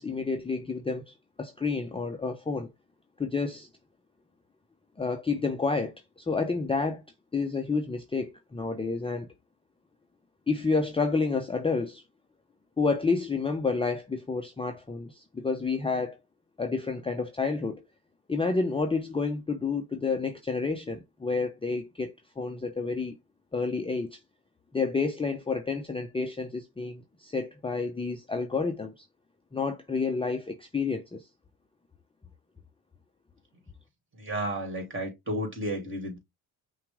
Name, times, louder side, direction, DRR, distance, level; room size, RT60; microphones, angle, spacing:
voice 1, 0.0-2.7 3.2-3.7 5.0-7.0 7.3-9.3 10.5-12.0 12.8-16.2 16.6-17.8 18.3-23.2 23.5-24.2 24.7-29.0 29.5-31.3, left 4 dB, 15° left, 0.7 m, -30 dB
voice 2, 34.1-36.2, right 1 dB, 30° right, 2.6 m, -32 dB
5.7 x 2.4 x 3.5 m
hypercardioid pair, 60°, 41 cm